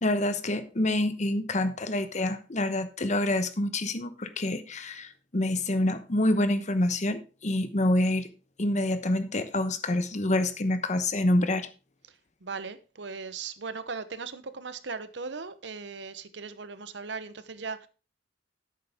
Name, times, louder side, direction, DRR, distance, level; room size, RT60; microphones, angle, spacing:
voice 1, 0.0-8.3 8.6-11.7, left 1 dB, 40° left, 1.0 m, -27 dB
voice 2, 12.1-17.9, right 4 dB, 70° right, 0.9 m, -38 dB
10.5 x 8.6 x 3.6 m
head